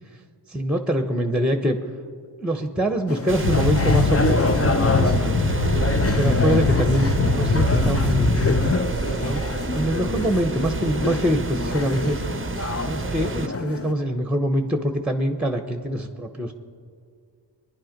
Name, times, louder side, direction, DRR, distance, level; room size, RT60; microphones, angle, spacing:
voice 1, 0.5-1.8 2.4-9.4 9.7-12.2 12.8-16.5, equal, 5° right, 6 dB, 1.0 m, -25 dB
sound 1, 3.1-13.9, left 3 dB, 30° left, 0.8 m, -28 dB
sound 2, 3.3-13.5, right 4 dB, 30° right, 0.6 m, -29 dB
sound 3, 3.4-8.7, left 4 dB, 85° left, 1.1 m, -22 dB
23.5 x 10.5 x 5.2 m, 2.2 s
wide cardioid pair, 60°, 45 cm